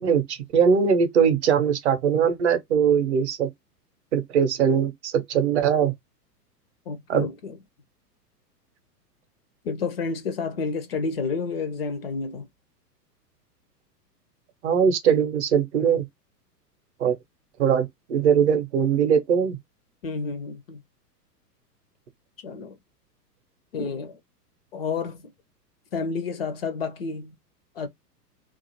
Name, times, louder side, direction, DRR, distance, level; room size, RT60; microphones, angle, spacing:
voice 1, 0.0-3.5 4.1-5.9 7.1-7.3 14.6-16.0 17.0-17.2 17.6-19.6, right 7 dB, 45° right, 0.7 m, -21 dB
voice 2, 6.9-7.6 9.6-12.5 20.0-20.8 22.4-22.8 23.7-24.2 24.7-25.3 25.9-27.4 27.8-27.9, left 4 dB, 40° left, 0.5 m, -30 dB
2.4 x 2.4 x 2.8 m
figure-of-eight pair, 105°, 49 cm